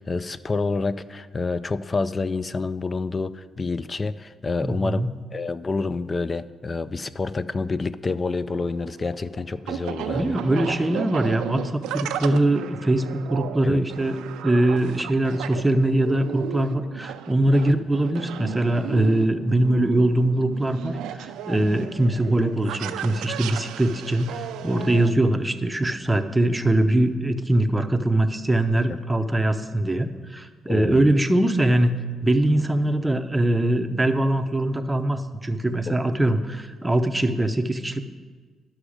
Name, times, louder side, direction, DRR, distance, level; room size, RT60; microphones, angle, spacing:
voice 1, 0.0-5.1 5.3-10.4 13.6-13.8 30.7-31.1 35.9-36.0, left 3 dB, 30° left, 15 dB, 0.4 m, -28 dB
voice 2, 4.6-5.1 10.1-14.2 14.4-38.1, right 1 dB, 10° right, 8 dB, 0.7 m, -22 dB
sound 1, 8.5-25.1, right 10 dB, 90° right, 0.4 m, -35 dB
11.5 x 6.2 x 5.0 m, 1.5 s
cardioid pair, 90°, 0 cm